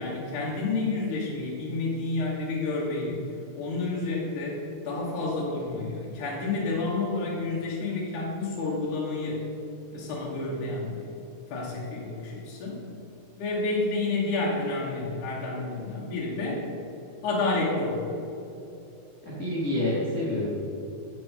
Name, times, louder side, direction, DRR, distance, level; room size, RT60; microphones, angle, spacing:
voice 1, 0.0-3.3 3.6-9.4 9.9-11.1 11.5-12.8 13.4-16.6 17.2-18.0, left 3 dB, 60° left, -4 dB, 2.2 m, -30 dB
voice 2, 19.2-20.5, left 1 dB, 30° left, -9 dB, 1.8 m, -28 dB
10.5 x 7.2 x 5.3 m, 2.8 s
omnidirectional pair, 4.8 m